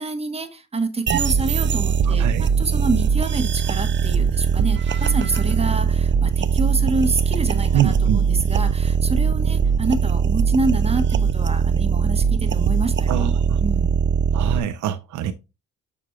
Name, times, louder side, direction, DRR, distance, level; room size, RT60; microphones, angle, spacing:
voice 1, 0.0-13.3 13.6-14.0, right 3 dB, 20° right, 1.1 m, -27 dB
sound 1, 1.1-14.6, right 6 dB, 40° right, 0.5 m, -20 dB
voice 2, 2.0-2.5 7.7-8.2 13.1-13.6 14.3-15.3, right 11 dB, 75° right, 0.7 m, -24 dB
6.7 x 6.0 x 2.3 m
cardioid pair, 90°, 30 cm